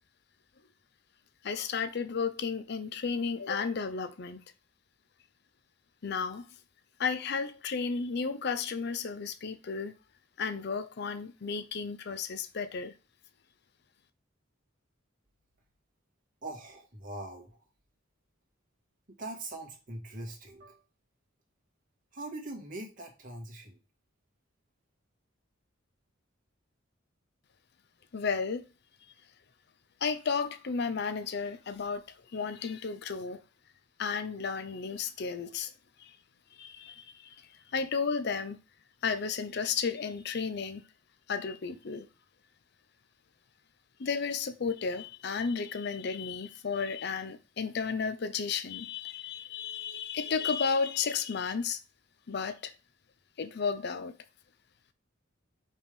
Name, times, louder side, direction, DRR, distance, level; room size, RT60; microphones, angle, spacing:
voice 1, 1.4-4.4 6.0-6.4 7.0-9.9 10.4-12.9 28.1-28.7 30.0-33.4 34.0-35.7 36.0-36.2 36.6-38.6 39.0-40.8 41.3-42.1 44.0-51.8 52.3-52.7 53.4-54.2, left 5 dB, 55° left, 0.5 m, -33 dB
voice 2, 16.4-17.6 19.1-20.8 22.1-23.8, right 2 dB, 45° right, 1.9 m, -42 dB
5.2 x 3.5 x 5.3 m
head